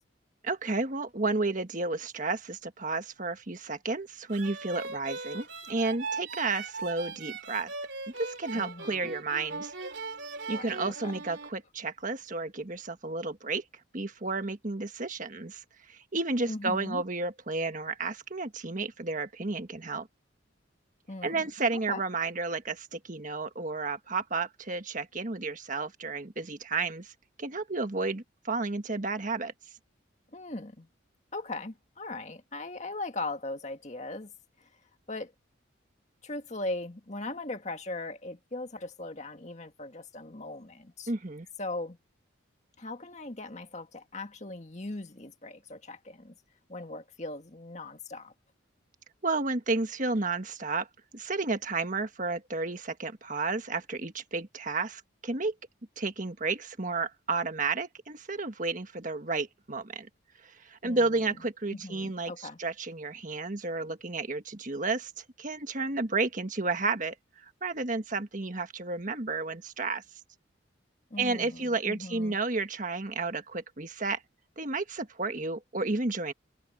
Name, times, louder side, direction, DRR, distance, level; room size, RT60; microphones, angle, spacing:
voice 1, 0.4-7.7 8.2-9.7 10.5-13.6 13.9-15.6 15.9-20.1 21.2-27.1 27.4-29.5 41.1-41.5 49.2-50.9 51.1-55.5 56.0-60.1 60.4-67.1 67.6-70.0 71.2-74.2 74.6-76.3, right 3 dB, 40° right, 1.5 m, -32 dB
sound 1, 4.3-11.5, right 4 dB, 65° right, 3.5 m, -39 dB
voice 2, 8.5-9.2 10.5-11.2 16.5-17.0 21.1-22.0 30.3-30.9 31.3-34.3 34.6-34.7 35.1-35.3 36.2-41.1 41.6-42.0 42.8-46.3 46.7-48.3 60.8-61.4 61.7-62.6 71.1-72.4, left 2 dB, 35° left, 1.9 m, -39 dB
head